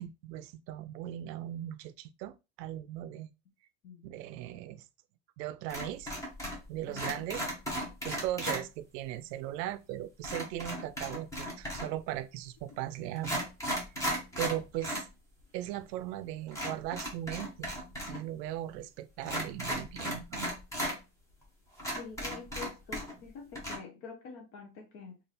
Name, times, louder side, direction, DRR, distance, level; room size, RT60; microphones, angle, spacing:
voice 1, 0.0-3.3 4.0-4.8 5.4-6.1 6.7-7.4 8.0-13.4 14.4-15.1 15.5-17.7 18.1-20.5, right 13 dB, 80° right, 0.6 m, -38 dB
sound 1, 5.7-6.7 6.9-8.6 10.2-12.0 12.7-12.8 13.2-15.1 15.4-15.5 16.5-18.2 18.4-18.5 19.2-21.0 21.4-21.5 21.8-23.3 23.5-23.8, equal, 5° left, 0.8 m, -36 dB
voice 2, 6.9-7.3 22.0-25.2, left 5 dB, 30° left, 0.5 m, -47 dB
3.3 x 2.5 x 4.0 m
supercardioid pair, 160°, 49 cm